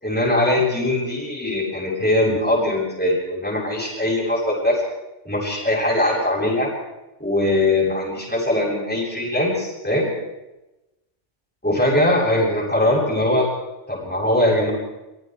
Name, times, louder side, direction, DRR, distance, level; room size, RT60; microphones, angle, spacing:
voice 1, 0.0-4.8 5.2-6.7 7.2-10.1 11.6-13.5 13.9-14.7, left 1 dB, 5° left, -5 dB, 7.6 m, -21 dB
26.5 x 22.0 x 4.7 m, 0.98 s
omnidirectional pair, 1.2 m